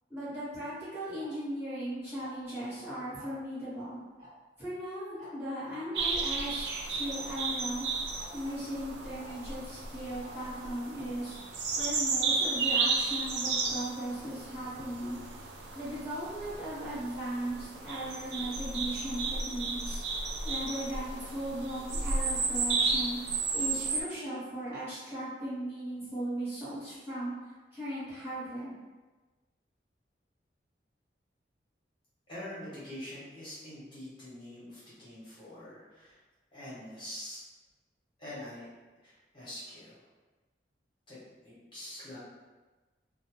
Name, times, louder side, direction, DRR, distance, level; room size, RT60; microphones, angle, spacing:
voice 1, 0.1-4.0 4.6-7.8 8.3-11.4 11.8-15.2 15.7-20.0 20.4-27.3 27.7-28.7, right 1 dB, 15° right, -13 dB, 1.2 m, -37 dB
Tick-tock, 1.2-1.3 2.2-2.5 3.2-3.4 4.2-4.3 4.6-4.7 5.2-5.3 6.2-6.3 7.2-7.3 8.2-8.3 9.2-9.3 10.2-10.3, equal, 50° right, 1.0 m, -51 dB
sound 1, 5.9-24.0, right 4 dB, 80° right, 0.4 m, -33 dB
voice 2, 32.3-36.2 36.5-37.4 38.2-38.7 39.0-40.0 41.1-41.2 41.4-42.2, left 1 dB, 30° left, -10 dB, 1.0 m, -44 dB
2.6 x 2.1 x 3.0 m, 1.2 s
head